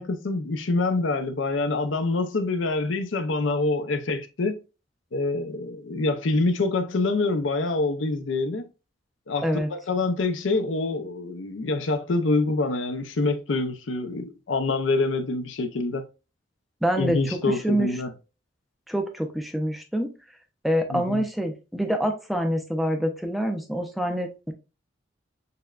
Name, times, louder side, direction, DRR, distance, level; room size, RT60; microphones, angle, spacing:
voice 1, 0.0-4.6 5.1-8.6 9.3-16.0 17.0-18.1 20.9-21.2, left 3 dB, 90° left, 0.6 m, -26 dB
voice 2, 16.8-17.2 17.5-17.9 18.9-20.1 20.6-24.5, equal, ahead, 0.5 m, -26 dB
6.6 x 2.2 x 2.4 m
head